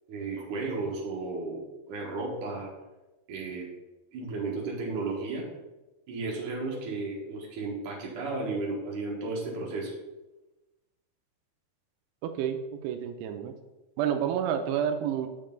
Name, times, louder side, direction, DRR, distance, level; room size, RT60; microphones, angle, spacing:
voice 1, 0.1-1.6 1.9-2.7 3.3-3.7 4.1-5.5 6.1-9.9, right 3 dB, 60° right, -2 dB, 2.2 m, -33 dB
voice 2, 12.2-13.5 14.0-15.3, right 9 dB, 80° right, 6 dB, 2.5 m, -29 dB
6.6 x 6.5 x 3.8 m, 1.1 s
omnidirectional pair, 5.3 m